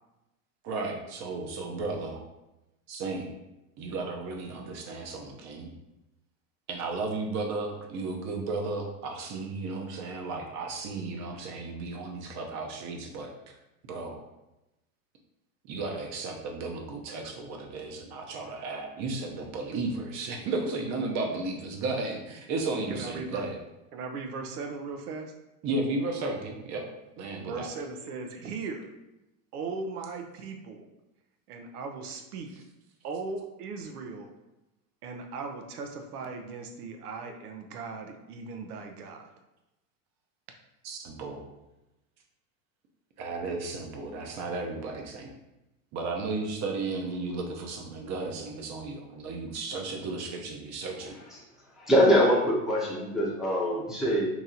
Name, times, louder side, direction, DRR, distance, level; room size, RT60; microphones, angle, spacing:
voice 1, 0.6-2.2 2.9-3.3 3.8-5.7 6.7-13.3 13.9-14.2 15.6-23.6 25.6-26.8 27.2-27.7 40.8-41.4 43.2-45.3 45.9-51.1, right 3 dB, 40° right, 2 dB, 0.7 m, -34 dB
voice 2, 22.9-23.5 23.9-25.3 27.4-28.9 29.5-30.9 31.5-32.5 33.0-34.3 35.0-39.3, right 4 dB, 90° right, 4 dB, 0.7 m, -38 dB
voice 3, 51.8-54.3, equal, ahead, -6 dB, 0.7 m, -23 dB
3.0 x 2.8 x 3.8 m, 0.96 s
supercardioid pair, 120°, 44 cm